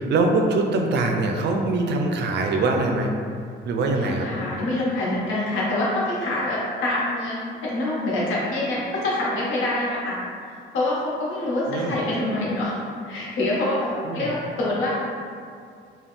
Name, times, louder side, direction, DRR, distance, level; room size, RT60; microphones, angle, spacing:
voice 1, 0.0-3.1 3.7-4.3 11.7-12.0 14.0-14.3, right 2 dB, 60° right, 3 dB, 0.4 m, -23 dB
voice 2, 4.0-10.2 10.7-14.9, left 1 dB, 85° left, -6 dB, 0.9 m, -25 dB
2.4 x 2.2 x 3.6 m, 2.3 s
cardioid pair, 90°, 20 cm